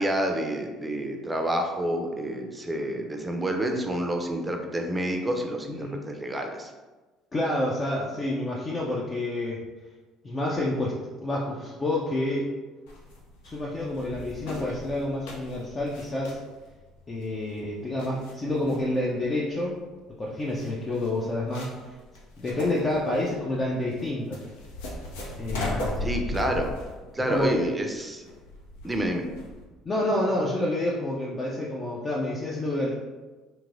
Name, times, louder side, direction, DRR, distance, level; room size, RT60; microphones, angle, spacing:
voice 1, 0.0-6.7 26.0-26.7 27.1-28.2 28.8-29.3, right 1 dB, 20° right, 3 dB, 0.5 m, -28 dB
voice 2, 5.7-6.1 7.3-9.6 10.2-12.5 13.4-16.4 17.1-19.8 20.2-21.7 22.4-24.4 25.4-26.1 27.3-27.5 29.9-32.9, left 1 dB, 35° left, -4 dB, 0.5 m, -28 dB
sound 1, 12.9-29.6, left 1 dB, 80° left, 0.5 m, -38 dB
3.0 x 2.8 x 2.5 m, 1.3 s
hypercardioid pair, 60°, 0 cm